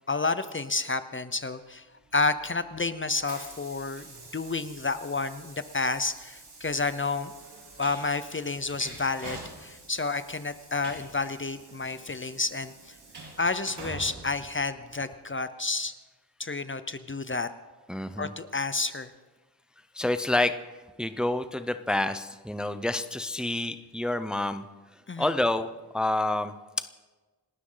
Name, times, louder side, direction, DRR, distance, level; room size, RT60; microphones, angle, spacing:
voice 1, 0.1-1.8 2.1-4.1 4.3-7.3 7.8-12.9 13.4-15.9 16.4-17.5 18.2-19.1 25.1-25.3, left 3 dB, 30° left, 12 dB, 0.7 m, -30 dB
Train, 2.1-15.2, right 2 dB, 75° right, 4.7 m, -47 dB
voice 2, 17.9-18.3 19.9-20.5 21.0-24.6 25.2-25.7 25.9-26.5, left 2 dB, ahead, 10 dB, 0.7 m, -28 dB
28.5 x 12.5 x 3.9 m, 1.3 s
wide cardioid pair, 105°, 40 cm